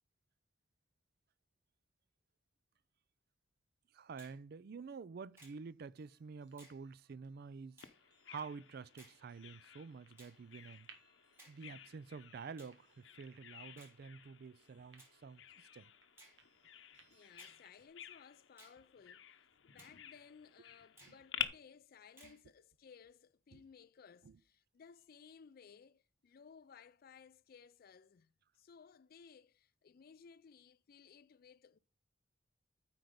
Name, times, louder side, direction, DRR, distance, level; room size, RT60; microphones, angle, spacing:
voice 1, 3.9-7.8 8.3-10.9 11.5-15.4 15.7-15.9 21.0-21.1 22.2-22.3 23.5-23.6 24.2-24.4, right 5 dB, 60° right, 0.4 m, -49 dB
Finger snapping, 4.2-4.4 5.4-5.6 6.6-6.8 7.8-8.0 9.0-9.2 10.2-10.4 11.4-11.6 12.6-12.8 13.8-14.0 15.0-15.2 16.2-16.4 17.4-17.6 18.6-18.8 19.8-20.0 21.0-21.2 22.2-22.4, right 1 dB, 15° right, 4.9 m, -60 dB
sound 1, 5.3-17.9, right 5 dB, 80° right, 1.7 m, -70 dB
Bird vocalization bird call bird song, 7.8-21.5, left 10 dB, 90° left, 0.7 m, -50 dB
voice 2, 17.1-19.3 19.6-31.8, left 6 dB, 55° left, 0.4 m, -60 dB
9.1 x 4.5 x 5.1 m
head